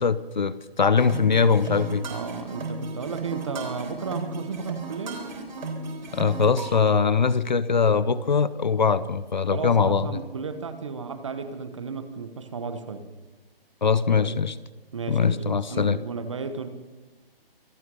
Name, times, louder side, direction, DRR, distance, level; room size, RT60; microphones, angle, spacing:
voice 1, 0.0-2.1 6.1-10.2 13.8-14.6 15.1-16.0, left 5 dB, 50° left, 17 dB, 0.7 m, -22 dB
sound 1, 1.0-6.9, right 3 dB, 50° right, 3.7 m, -35 dB
voice 2, 2.1-5.2 9.5-13.1 14.1-14.3 14.9-16.7, right 5 dB, 30° right, 10 dB, 1.1 m, -34 dB
26.0 x 9.4 x 5.4 m, 1.2 s
hypercardioid pair, 170°, 30 cm